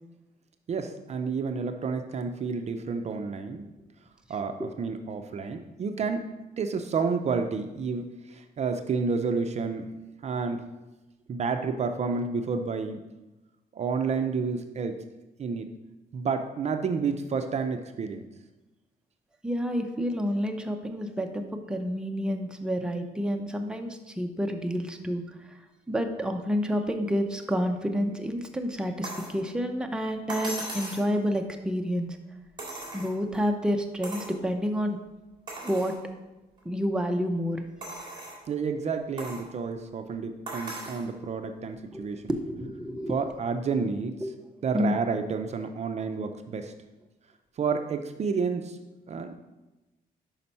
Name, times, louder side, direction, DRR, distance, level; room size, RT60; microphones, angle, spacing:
voice 1, 0.7-3.7 4.3-6.3 6.6-9.9 10.2-10.6 11.3-13.0 13.7-15.0 15.4-15.7 16.1-18.2 38.5-42.2 43.1-44.2 44.6-46.7 47.6-48.8 49.1-49.4, right 5 dB, 45° right, 7 dB, 0.5 m, -30 dB
voice 2, 19.4-21.4 21.7-25.5 25.9-32.2 32.9-35.0 35.6-35.9 36.6-37.6 41.9-43.1 44.2-44.3 44.7-44.9, equal, 5° right, 4 dB, 0.6 m, -29 dB
sound 1, 29.0-29.4 30.3-31.1 32.6-33.4 34.0-34.4 34.9-35.0 35.5-36.0 36.6-36.7 37.8-38.4 39.2-39.5 40.5-41.0 42.3-42.4, right 1 dB, 30° right, 2.4 m, -38 dB
5.7 x 5.2 x 5.4 m, 1.1 s
cardioid pair, 115°, 16 cm